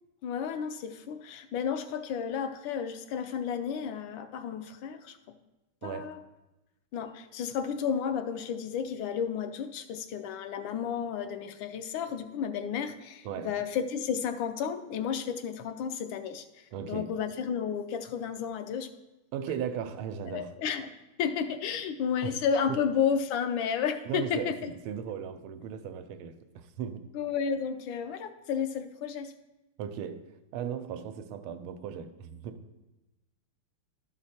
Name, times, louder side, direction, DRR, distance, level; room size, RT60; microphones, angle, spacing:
voice 1, 0.2-5.2 5.8-6.2 6.9-18.9 20.3-20.9 21.2-24.7 27.1-29.3, left 7 dB, 75° left, 9 dB, 1.3 m, -32 dB
voice 2, 5.8-6.1 13.2-13.6 16.7-17.1 19.3-20.5 22.2-22.4 22.7-22.8 24.1-27.0 29.8-30.2 30.5-32.7, right 8 dB, 85° right, 10 dB, 1.5 m, -37 dB
12.0 x 4.9 x 4.2 m, 1.0 s
omnidirectional pair, 2.3 m